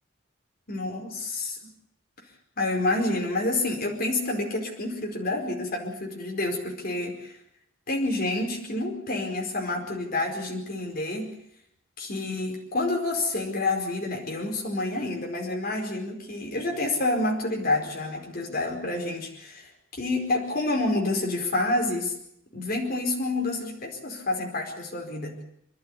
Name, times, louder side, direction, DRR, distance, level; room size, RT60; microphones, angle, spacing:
voice 1, 0.7-1.6 2.6-7.3 7.9-11.3 12.0-22.1 22.5-25.4, left 2 dB, 45° left, 1 dB, 4.8 m, -28 dB
28.0 x 12.5 x 9.8 m, 0.74 s
head